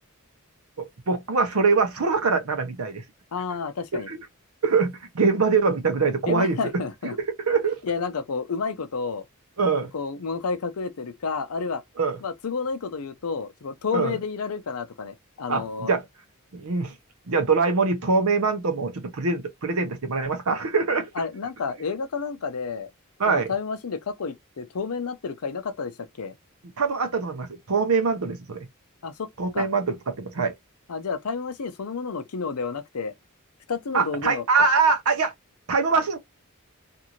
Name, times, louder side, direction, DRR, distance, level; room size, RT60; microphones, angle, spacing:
voice 1, 0.8-3.0 4.1-4.2 4.6-6.6 7.5-7.8 9.6-9.9 12.0-12.2 13.9-14.2 15.5-16.0 16.5-16.9 17.3-21.1 23.2-23.5 26.8-28.7 29.4-30.5 33.9-35.3 35.7-36.2, right 4 dB, 80° right, 0.7 m, -23 dB
voice 2, 3.3-4.1 6.3-7.2 7.8-9.2 9.9-11.8 12.2-15.9 21.2-22.9 23.3-26.3 29.0-29.3 29.5-29.7 30.9-33.1 33.7-34.4, left 5 dB, 90° left, 0.6 m, -30 dB
2.6 x 2.5 x 2.9 m
head